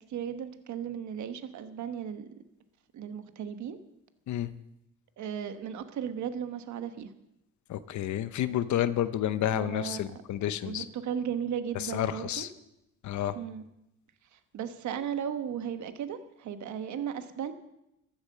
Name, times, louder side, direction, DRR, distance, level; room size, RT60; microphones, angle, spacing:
voice 1, 0.0-2.2 2.9-3.8 5.2-7.1 9.5-10.2 10.6-12.5 13.3-13.7 14.3-17.5, right 8 dB, 70° right, 10 dB, 1.2 m, -36 dB
voice 2, 7.7-10.9 11.7-12.5 13.0-13.4, left 11 dB, 70° left, 13 dB, 0.8 m, -30 dB
14.5 x 11.5 x 6.7 m, 0.87 s
cardioid pair, 90°, 30 cm